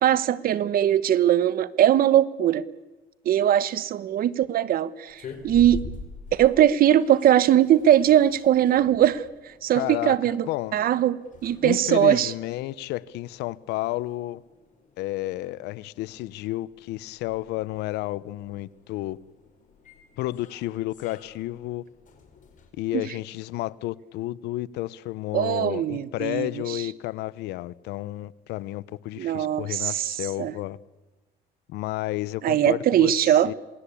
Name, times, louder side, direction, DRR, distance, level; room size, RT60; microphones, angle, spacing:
voice 1, 0.0-2.6 3.2-5.8 6.3-9.2 9.6-12.3 22.9-23.0 25.3-26.8 29.2-30.5 32.4-33.5, right 11 dB, 60° right, 1.2 m, -21 dB
sound 1, 5.0-22.7, left 5 dB, 50° left, 4.8 m, -47 dB
voice 2, 9.7-10.8 11.6-14.4 15.0-19.2 20.2-21.8 22.8-30.8 31.7-33.5, left 16 dB, 90° left, 0.8 m, -31 dB
27.5 x 20.0 x 8.5 m
cardioid pair, 110°, 17 cm